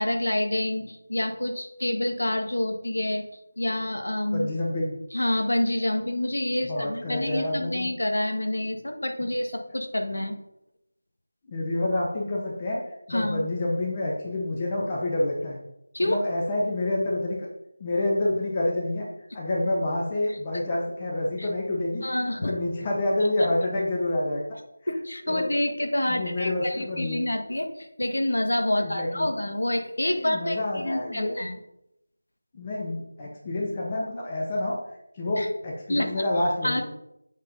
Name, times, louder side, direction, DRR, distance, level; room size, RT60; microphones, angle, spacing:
voice 1, 0.0-3.2 3.6-4.5 5.1-10.4 13.1-13.5 15.9-16.2 21.4-21.5 22.0-22.5 24.9-31.6 35.4-35.5 35.9-36.2 36.6-36.8, left 1 dB, 75° left, 4 dB, 1.5 m, -27 dB
voice 2, 4.3-5.0 6.6-7.9 11.5-15.6 16.0-17.4 17.8-19.1 19.3-22.1 22.4-24.4 25.3-25.5 26.1-27.2 28.8-29.3 30.1-31.4 32.5-34.8 35.1-36.8, left 1 dB, 25° left, -3 dB, 1.2 m, -28 dB
8.1 x 4.3 x 5.3 m, 0.83 s
figure-of-eight pair, 165°, 0 cm